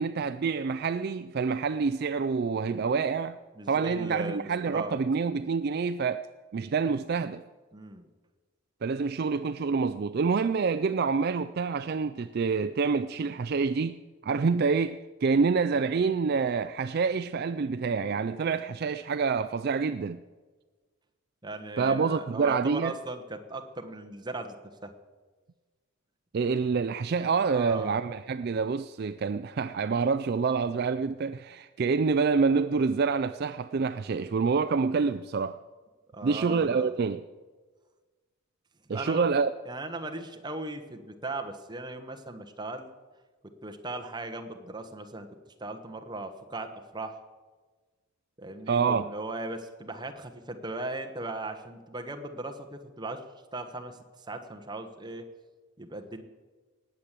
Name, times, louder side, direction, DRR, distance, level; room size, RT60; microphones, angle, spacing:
voice 1, 0.0-3.4 3.7-6.2 6.5-7.4 8.8-20.2 21.8-22.9 26.3-35.6 36.2-37.2 38.9-39.5 48.7-49.1, right 5 dB, 45° right, 0.4 m, -27 dB
voice 2, 3.5-5.0 7.7-8.1 21.4-24.5 24.8-24.9 27.2-28.0 36.1-36.9 38.9-39.3 39.6-42.9 43.6-45.3 45.6-47.2 48.4-53.2 53.5-55.3 55.8-56.2, right 2 dB, 20° right, 1.2 m, -38 dB
19.0 x 8.2 x 7.5 m
head